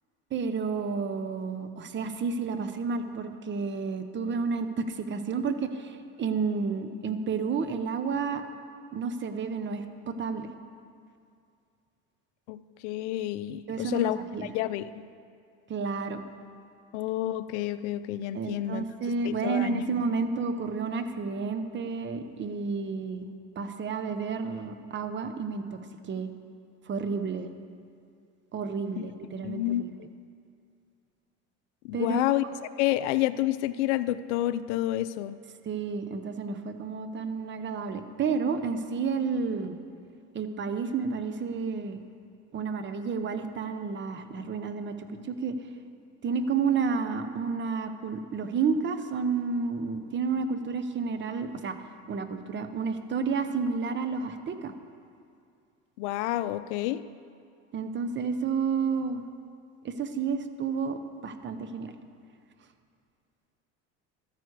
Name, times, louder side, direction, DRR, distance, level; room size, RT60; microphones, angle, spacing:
voice 1, 0.3-8.4 8.9-10.5 13.7-14.5 15.7-16.2 18.3-23.3 23.6-25.8 26.1-26.3 26.9-27.5 28.5-29.9 31.9-32.2 35.7-39.8 40.3-42.0 42.5-45.6 46.2-51.8 52.1-54.7 57.7-59.2 59.8-61.9, right 5 dB, 35° right, 9 dB, 0.8 m, -31 dB
voice 2, 12.5-15.0 16.9-18.9 19.2-19.8 29.4-30.1 31.8-32.4 32.8-35.4 56.0-57.0, left 14 dB, 85° left, 14 dB, 0.5 m, -29 dB
13.0 x 9.5 x 4.8 m, 2.3 s
supercardioid pair, 105°, 34 cm